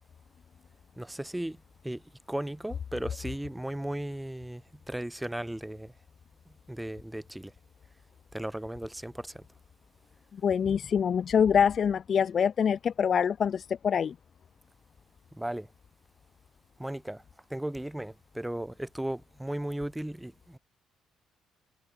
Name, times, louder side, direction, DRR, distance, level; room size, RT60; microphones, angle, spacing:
voice 1, 1.0-1.6 1.8-2.0 2.3-4.6 4.9-5.9 6.7-7.5 8.3-9.4 15.3-15.7 16.8-17.2 17.5-20.6, right 1 dB, 5° right, 2.3 m, -36 dB
voice 2, 10.4-14.1, left 7 dB, 40° left, 0.4 m, -25 dB
cardioid pair, 140°, 0 cm